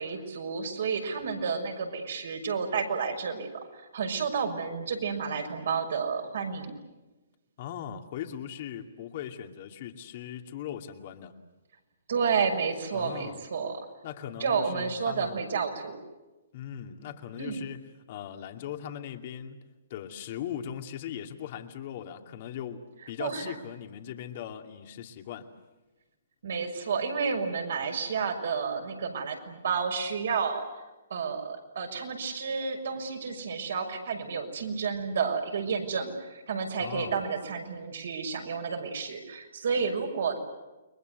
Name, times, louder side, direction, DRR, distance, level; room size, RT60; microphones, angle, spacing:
voice 1, 0.0-6.7 12.1-13.8 14.4-16.0 17.4-17.6 23.2-23.5 26.4-30.6 31.1-40.4, right 5 dB, 65° right, 3 dB, 6.3 m, -31 dB
voice 2, 7.6-11.3 12.9-13.4 14.0-15.4 16.5-19.6 19.9-25.5 36.8-37.2, left 9 dB, 45° left, 5 dB, 2.5 m, -39 dB
30.0 x 22.5 x 8.2 m, 1.1 s
hypercardioid pair, 135°, 0 cm